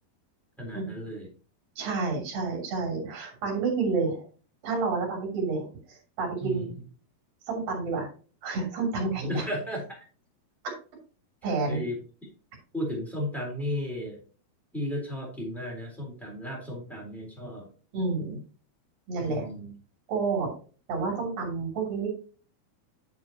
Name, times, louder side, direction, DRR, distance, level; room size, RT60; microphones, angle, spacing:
voice 1, 0.6-1.3 6.4-6.7 9.3-10.0 11.7-12.0 12.7-14.2 14.7-17.7 19.2-19.7, left 1 dB, ahead, -2 dB, 3.2 m, -34 dB
voice 2, 1.8-4.2 4.6-6.7 7.5-8.1 8.4-9.5 11.4-11.8 17.9-18.4 19.1-19.5 20.1-20.5 20.9-22.1, right 4 dB, 65° right, -1 dB, 4.7 m, -29 dB
8.7 x 7.2 x 2.9 m, 0.39 s
omnidirectional pair, 4.4 m